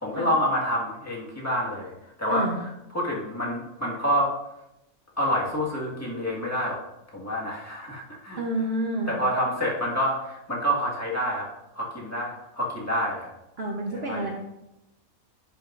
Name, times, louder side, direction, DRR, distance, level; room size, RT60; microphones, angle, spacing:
voice 1, 0.0-1.9 2.2-2.5 2.9-4.3 5.2-6.8 7.1-8.4 9.1-11.5 11.7-13.3 13.9-14.3, equal, 10° left, -4 dB, 1.6 m, -27 dB
voice 2, 8.4-9.1 13.6-14.3, right 1 dB, 50° right, 0 dB, 1.0 m, -29 dB
10.5 x 5.4 x 2.5 m, 0.89 s
omnidirectional pair, 1.4 m